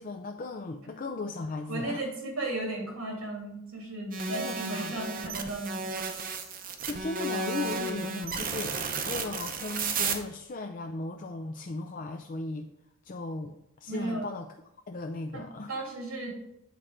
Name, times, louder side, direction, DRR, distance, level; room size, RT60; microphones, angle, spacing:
voice 1, 0.0-2.0 4.3-4.9 6.8-12.7 13.0-14.5 14.9-15.7, left 3 dB, 40° left, 4 dB, 0.4 m, -37 dB
voice 2, 1.7-6.1 13.9-14.3 15.3-16.4, right 2 dB, 90° right, 0 dB, 2.7 m, -35 dB
sound 1, 4.1-10.2, right 4 dB, 40° right, 0.8 m, -33 dB
8.4 x 4.4 x 5.1 m, 0.84 s
head